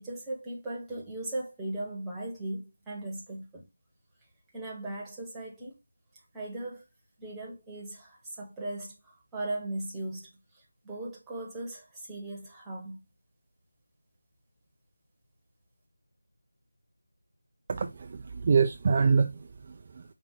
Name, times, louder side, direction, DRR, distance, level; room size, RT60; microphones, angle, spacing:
voice 1, 0.0-3.6 4.5-5.7 6.3-6.8 7.2-10.3 10.5-13.0, right 2 dB, 5° right, 1.0 m, -38 dB
voice 2, 17.7-20.0, right 5 dB, 30° right, 0.3 m, -26 dB
5.1 x 2.4 x 3.4 m
figure-of-eight pair, 165°, 0 cm